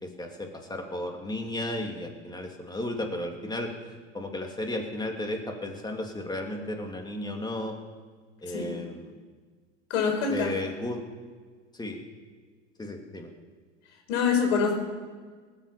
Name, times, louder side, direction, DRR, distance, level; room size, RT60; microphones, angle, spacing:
voice 1, 0.0-3.7 4.1-7.7 8.4-9.1 10.3-11.0 11.7-12.0 12.8-13.3, left 1 dB, 10° left, 2 dB, 2.9 m, -34 dB
voice 2, 8.5-8.8 9.9-10.5 14.1-14.8, left 5 dB, 70° left, 2 dB, 5.1 m, -25 dB
19.5 x 8.4 x 7.1 m, 1.5 s
hypercardioid pair, 90°, 37 cm